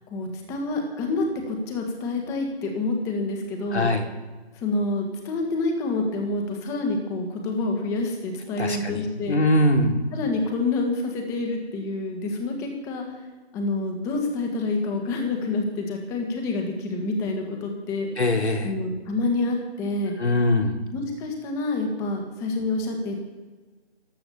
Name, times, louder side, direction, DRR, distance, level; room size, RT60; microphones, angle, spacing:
voice 1, 0.1-3.9 4.5-9.4 10.1-13.2 13.5-18.1 18.6-20.1 20.9-23.2, left 2 dB, 10° left, 3 dB, 1.7 m, -27 dB
voice 2, 3.7-4.0 8.6-10.0 18.2-18.7 20.2-20.8, left 1 dB, 85° left, 2 dB, 3.4 m, -22 dB
14.5 x 12.0 x 7.0 m, 1.3 s
figure-of-eight pair, 160°, 32 cm